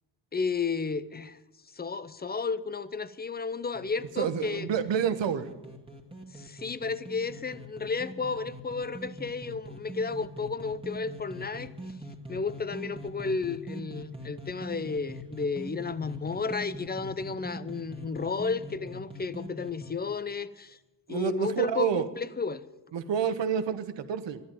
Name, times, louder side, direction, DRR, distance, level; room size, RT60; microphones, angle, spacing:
voice 1, 0.3-1.4 1.8-4.7 6.3-11.7 12.3-20.8 21.1-22.6, left 4 dB, 20° left, 16 dB, 0.7 m, -32 dB
sound 1, 3.7-19.9, equal, 10° right, 2.0 m, -43 dB
voice 2, 4.2-5.5 21.1-22.1 22.9-24.4, right 8 dB, 75° right, 11 dB, 1.1 m, -28 dB
11.5 x 10.5 x 9.1 m, 1.0 s
cardioid pair, 75°, 44 cm